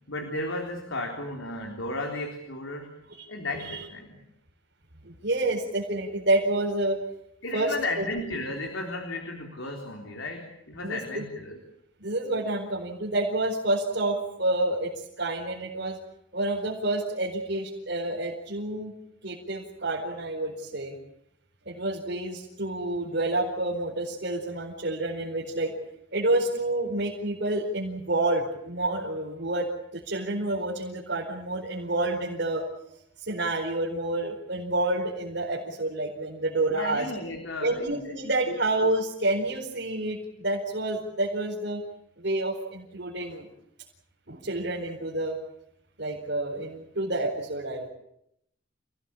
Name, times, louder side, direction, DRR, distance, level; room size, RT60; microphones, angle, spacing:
voice 1, 0.1-2.9 3.3-4.2 7.4-11.6 36.7-38.2 38.5-38.6, left 2 dB, 80° left, 3 dB, 3.8 m, -34 dB
voice 2, 5.0-7.0 7.5-8.0 10.8-11.2 12.0-16.0 16.3-18.9 19.2-21.0 21.7-25.8 26.1-32.7 33.2-37.1 37.6-41.8 42.2-43.5 44.3-45.4 46.0-47.9, right 2 dB, 60° right, -3 dB, 4.7 m, -29 dB
28.5 x 19.0 x 8.6 m, 0.76 s
head